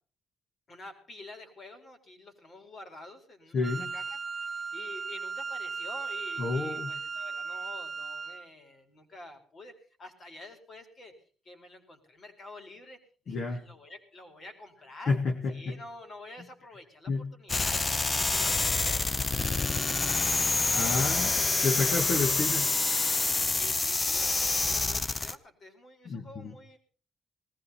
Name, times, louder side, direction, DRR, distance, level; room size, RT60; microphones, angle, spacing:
voice 1, 0.7-9.7 10.0-11.1 11.4-13.0 13.2-15.2 15.5-17.8 18.2-22.0 23.4-26.8, left 2 dB, 45° left, 5 dB, 4.6 m, -49 dB
voice 2, 3.5-3.9 6.4-6.9 13.3-13.6 15.1-15.8 17.1-17.3 20.7-22.8 26.1-26.5, left 4 dB, 60° left, 4 dB, 1.9 m, -30 dB
Wind instrument woodwind instrument, 3.6-8.5, right 4 dB, 25° right, 0.8 m, -36 dB
sound 1, 17.5-25.4, left 3 dB, 25° left, 0.8 m, -27 dB
19.5 x 15.0 x 4.3 m, 0.41 s
cardioid pair, 90°, 0 cm